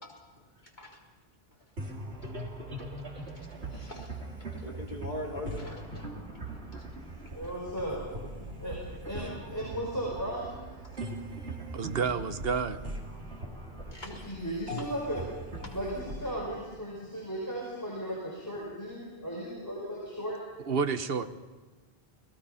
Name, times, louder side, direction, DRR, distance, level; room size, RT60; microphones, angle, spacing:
sound 1, 1.8-17.4, right 1 dB, 85° right, 3.2 m, -41 dB
voice 1, 3.7-4.1 4.6-6.1 8.4-8.5 13.9-14.2, left 1 dB, 45° left, -2 dB, 4.1 m, -41 dB
voice 2, 7.3-8.1 8.6-8.8 9.0-10.6 13.4-13.5 13.8-15.2 15.7-20.4, equal, 15° left, -4 dB, 5.4 m, -36 dB
voice 3, 11.7-12.8 20.7-21.3, right 5 dB, 70° right, 11 dB, 1.2 m, -29 dB
29.5 x 19.5 x 5.7 m, 1.3 s
omnidirectional pair, 1.1 m